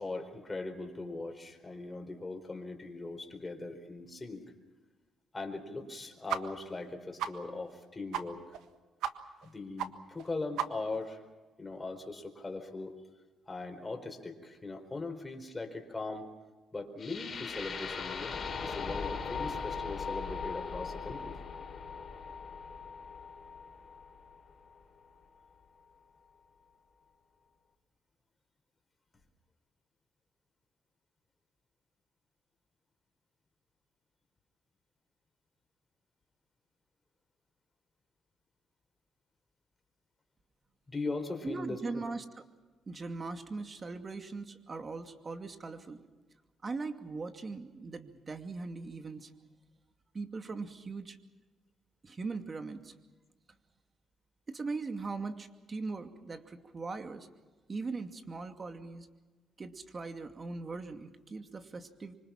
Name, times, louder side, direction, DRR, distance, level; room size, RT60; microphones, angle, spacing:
voice 1, 0.0-4.4 5.3-8.4 9.4-11.2 11.6-13.0 13.5-16.3 16.7-18.3 18.6-21.4 40.9-42.0, left 3 dB, 20° left, 5 dB, 4.5 m, -40 dB
sound 1, 6.3-6.4 6.7-6.8 7.2-7.3 7.7-7.8 8.1-8.2 8.5-8.7 9.0-9.1 9.4-9.5 9.8-9.9 10.2-10.3 10.6-11.0, right 10 dB, 90° right, 1.5 m, -34 dB
sound 2, 17.0-25.0, left 5 dB, 40° left, 4.3 m, -39 dB
voice 2, 41.4-42.2 42.9-46.0 46.6-49.3 50.1-51.2 52.0-52.9 54.5-57.3 57.7-59.1 59.6-62.1, right 3 dB, 35° right, 6 dB, 2.4 m, -40 dB
25.5 x 25.5 x 5.9 m, 1.2 s
cardioid pair, 90°, 0 cm